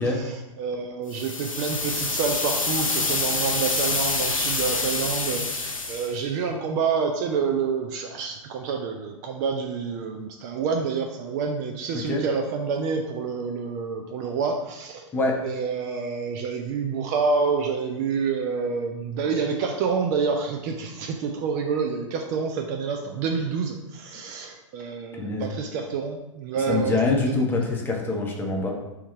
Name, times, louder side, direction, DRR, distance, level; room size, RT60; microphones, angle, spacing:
voice 1, 0.0-15.0 15.4-27.7, right 5 dB, 35° right, 3 dB, 0.4 m, -28 dB
sound 1, 1.1-6.1, left 3 dB, 85° left, 0.6 m, -26 dB
voice 2, 26.7-28.7, left 3 dB, 10° left, 0 dB, 0.7 m, -24 dB
3.4 x 3.0 x 4.5 m, 0.96 s
figure-of-eight pair, 100°, 17 cm